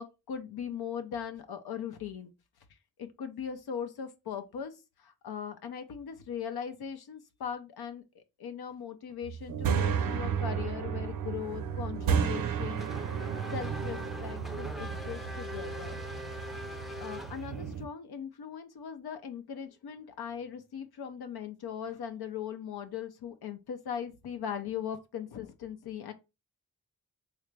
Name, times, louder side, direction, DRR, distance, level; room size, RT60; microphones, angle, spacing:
voice 1, 0.0-2.3 3.0-4.7 5.0-12.9 13.5-16.0 17.0-26.1, left 8 dB, 90° left, 0.6 m, -39 dB
sound 1, 9.2-17.9, right 7 dB, 65° right, 0.5 m, -33 dB
Race car auto racing / Accelerating revving vroom, 12.3-17.8, left 1 dB, ahead, 0.5 m, -42 dB
3.3 x 2.4 x 3.1 m
cardioid pair, 55°, 37 cm